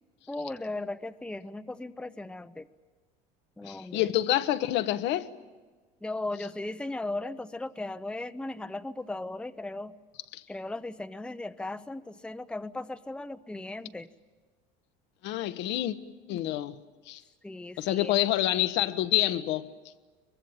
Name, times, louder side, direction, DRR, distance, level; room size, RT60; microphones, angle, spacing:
voice 1, 0.3-2.7 3.6-4.1 6.0-10.0 10.5-14.1 17.4-18.2, left 2 dB, 5° left, 0.8 m, -37 dB
voice 2, 3.6-5.3 10.3-10.4 15.2-16.0 16.3-16.8 17.1-17.2 17.8-19.7, left 14 dB, 65° left, 1.1 m, -27 dB
23.0 x 23.0 x 9.0 m
hypercardioid pair, 80°, 20 cm